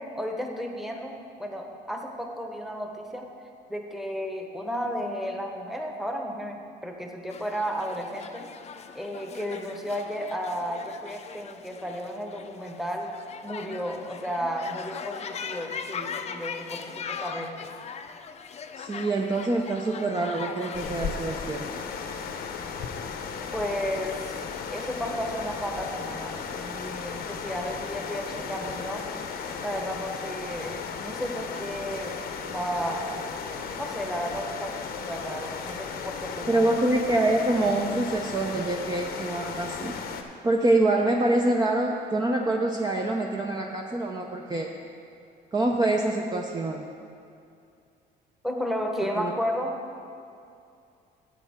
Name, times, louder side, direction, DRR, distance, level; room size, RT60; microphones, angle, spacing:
voice 1, 0.1-3.2 3.7-8.4 8.9-13.1 13.4-17.7 23.5-24.4 24.7-29.0 29.6-32.2 32.5-33.2 33.7-34.7 35.1-36.7 48.4-49.7, equal, ahead, 2 dB, 1.1 m, -33 dB
sound 1, 7.3-20.9, left 6 dB, 40° left, 0.5 m, -40 dB
voice 2, 18.8-21.7 28.6-28.7 36.5-39.9 40.4-44.7 45.5-46.8 49.2-49.3, right 2 dB, 25° right, 0 dB, 0.7 m, -25 dB
sound 2, 20.7-40.2, left 6 dB, 65° left, 0.9 m, -35 dB
12.5 x 8.4 x 3.6 m, 2.5 s
cardioid pair, 110°, 17 cm